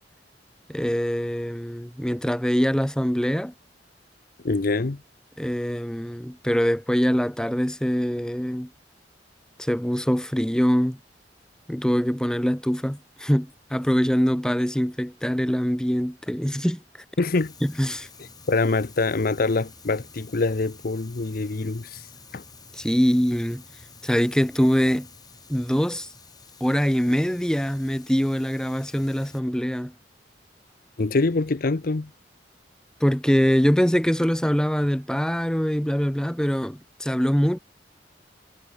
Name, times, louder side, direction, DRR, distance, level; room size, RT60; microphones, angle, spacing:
voice 1, 0.7-3.5 5.4-8.7 9.6-11.0 11.7-16.8 17.6-18.1 22.7-23.6 24.0-25.1 25.5-26.1 26.6-29.9 33.0-37.6, equal, 5° left, 1.0 m, -23 dB
voice 2, 4.4-5.0 17.2-17.5 18.5-22.0 22.3-22.4 31.0-32.1, left 3 dB, 55° left, 0.7 m, -24 dB
Fire, 17.3-29.4, left 4 dB, 20° left, 7.1 m, -49 dB
head